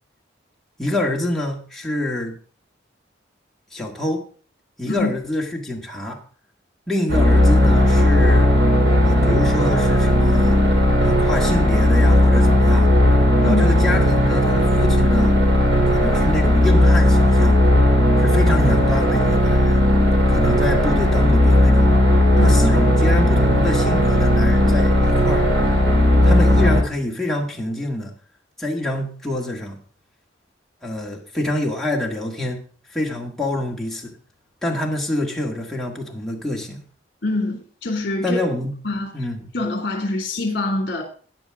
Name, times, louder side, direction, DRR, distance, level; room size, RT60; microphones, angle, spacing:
voice 1, 0.8-2.3 3.7-4.2 4.8-6.2 6.9-8.5 9.0-10.6 11.0-13.0 13.4-15.4 15.9-17.7 18.2-19.8 20.3-21.9 22.4-25.5 26.2-28.1 28.6-29.8 30.8-32.6 32.9-34.1 34.6-36.8 38.2-38.7 39.1-39.5, left 1 dB, ahead, -2 dB, 1.8 m, -26 dB
sound 1, 7.1-26.8, left 1 dB, 75° right, 3.2 m, -16 dB
voice 2, 37.2-38.4 38.8-39.1 39.5-41.0, left 2 dB, 55° left, 2 dB, 2.4 m, -24 dB
13.5 x 9.1 x 3.6 m, 0.41 s
head